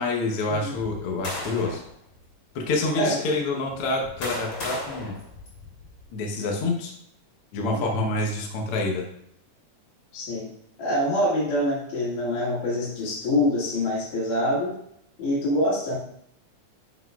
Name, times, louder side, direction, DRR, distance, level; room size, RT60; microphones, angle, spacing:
voice 1, 0.0-1.8 2.5-5.2 6.1-6.9 7.5-9.0, left 2 dB, 65° left, 1 dB, 1.5 m, -27 dB
sound 1, 1.0-1.9 2.7-2.8 3.7-6.0, left 2 dB, 40° left, 3.0 m, -36 dB
voice 2, 7.7-8.1 10.1-10.5 10.8-14.8 15.2-16.0, left 1 dB, 90° left, -7 dB, 3.6 m, -25 dB
9.6 x 6.0 x 2.3 m, 0.72 s
omnidirectional pair, 3.6 m